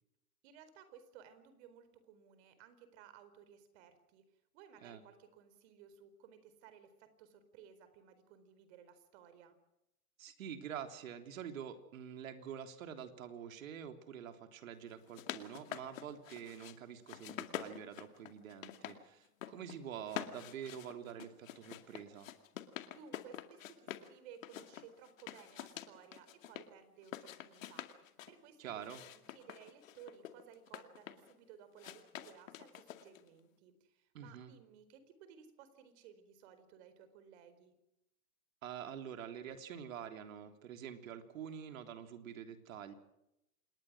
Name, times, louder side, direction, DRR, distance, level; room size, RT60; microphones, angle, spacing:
voice 1, 0.4-4.2 4.5-9.6 22.9-37.8, right 8 dB, 45° right, 11 dB, 4.5 m, -58 dB
voice 2, 10.2-22.3 28.6-29.0 34.1-34.5 38.6-42.9, right 8 dB, 60° right, 6 dB, 3.5 m, -47 dB
sound 1, 14.9-16.8 17.1-19.0 19.3-19.8 20.1-24.1 24.4-26.7 27.0-28.3 28.8-31.3 31.8-33.3, left 11 dB, 60° left, 2.4 m, -47 dB
27.0 x 20.5 x 6.3 m, 0.85 s
hypercardioid pair, 120°, 45 cm